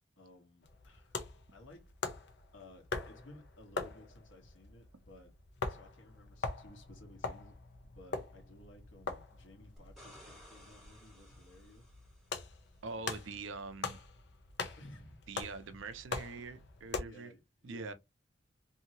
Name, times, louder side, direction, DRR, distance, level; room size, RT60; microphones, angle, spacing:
voice 1, 0.2-1.2 1.5-2.2 2.5-5.3 5.6-7.6 7.8-11.9 12.9-13.3 14.8-15.2 17.0-17.9, left 1 dB, 75° left, 1.1 m, -57 dB
sound 1, 0.6-17.0, left 4 dB, 60° left, 0.6 m, -43 dB
sound 2, 9.8-12.6 15.4-15.5, equal, ahead, 1.5 m, -58 dB
voice 2, 12.8-14.0 15.3-17.3 17.6-17.9, right 4 dB, 75° right, 0.5 m, -44 dB
2.8 x 2.7 x 2.7 m
head